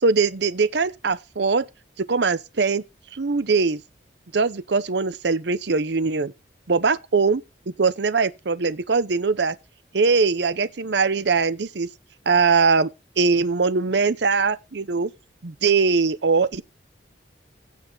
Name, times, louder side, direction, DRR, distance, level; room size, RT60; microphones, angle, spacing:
voice 1, 0.0-1.7 2.0-2.8 3.1-3.8 4.3-6.3 6.7-7.4 7.8-9.6 9.9-11.9 12.3-12.9 13.2-15.1 15.4-16.6, right 4 dB, 70° right, 0.7 m, -21 dB
16.0 x 5.5 x 3.9 m
head